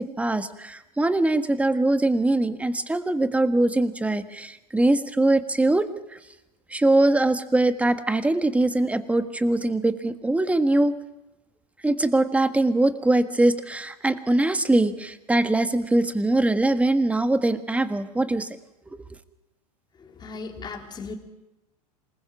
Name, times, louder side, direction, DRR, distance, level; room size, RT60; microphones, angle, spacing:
voice 1, 0.0-5.9 6.7-10.9 11.8-18.5, right 2 dB, 5° right, 10 dB, 1.6 m, -22 dB
voice 2, 20.0-21.2, left 4 dB, 20° left, 2 dB, 3.2 m, -37 dB
27.0 x 21.0 x 6.1 m, 0.96 s
hypercardioid pair, 100°, 21 cm